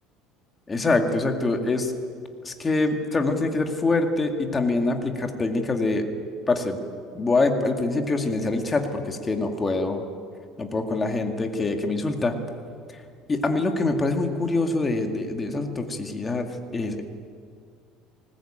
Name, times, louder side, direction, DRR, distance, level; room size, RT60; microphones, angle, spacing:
voice 1, 0.7-1.9 2.4-6.0 6.5-6.8 7.1-10.0 10.6-12.3 13.3-16.5 16.7-17.0, left 3 dB, 20° left, 4 dB, 2.2 m, -24 dB
20.5 x 19.0 x 8.9 m, 2.3 s
cardioid pair, 135°, 0 cm